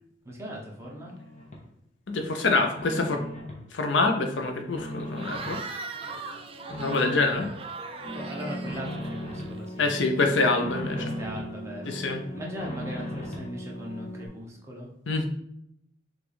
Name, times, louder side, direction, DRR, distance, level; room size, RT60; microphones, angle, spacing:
voice 1, 0.2-1.2 8.1-10.0 11.0-12.0 12.3-14.9, equal, 15° right, -2 dB, 0.8 m, -39 dB
sound 1, 0.8-1.6 2.1-3.6 4.0-5.6 6.0-7.6 8.0-9.6 9.9-11.5 11.9-13.5, equal, 40° left, 0.8 m, -40 dB
voice 2, 2.1-3.2 3.7-5.6 6.8-7.5 9.8-11.0 11.9-12.2 15.1-15.3, left 3 dB, 85° left, 4 dB, 0.7 m, -25 dB
Cheering / Crowd, 5.1-9.8, right 4 dB, 30° right, 0.4 m, -39 dB
sound 2, 8.0-14.3, right 1 dB, 20° left, 1.4 m, -38 dB
5.9 x 2.5 x 3.4 m, 0.77 s
head